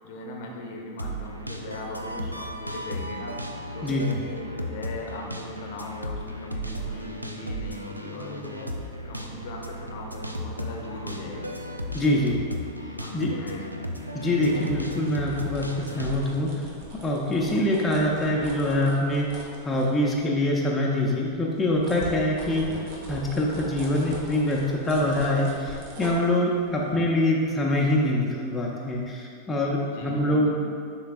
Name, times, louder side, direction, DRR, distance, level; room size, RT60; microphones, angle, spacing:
voice 1, 0.0-11.5 12.3-12.5 13.0-13.6 22.6-22.8 26.9-27.0 29.9-30.6, left 1 dB, 50° left, 0 dB, 0.9 m, -39 dB
sound 1, 1.0-16.3, equal, 85° right, 0.4 m, -35 dB
voice 2, 11.9-12.4 13.1-13.3 14.1-16.6 17.0-19.3 19.6-22.6 23.1-30.6, left 1 dB, 15° left, -3 dB, 0.7 m, -24 dB
sound 2, 14.5-20.6 21.0-28.5 28.9-29.0, right 1 dB, 50° right, 1.1 m, -42 dB
10.0 x 3.8 x 2.5 m, 2.3 s
figure-of-eight pair, 90°, 0 cm